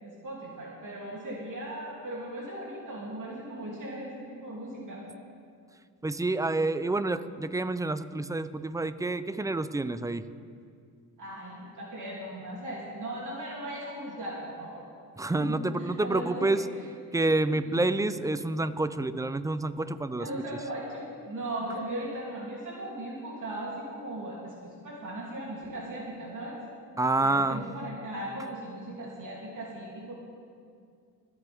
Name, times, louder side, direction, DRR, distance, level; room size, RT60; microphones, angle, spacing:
voice 1, 0.0-5.0 11.2-14.8 15.3-16.6 20.2-26.6 27.2-30.1, right 1 dB, 50° right, -4 dB, 3.0 m, -38 dB
voice 2, 6.0-10.3 15.2-16.6 17.1-20.3 27.0-27.6, right 2 dB, 10° right, 13 dB, 0.5 m, -28 dB
22.0 x 8.2 x 3.6 m, 2.3 s
cardioid pair, 75°, 40 cm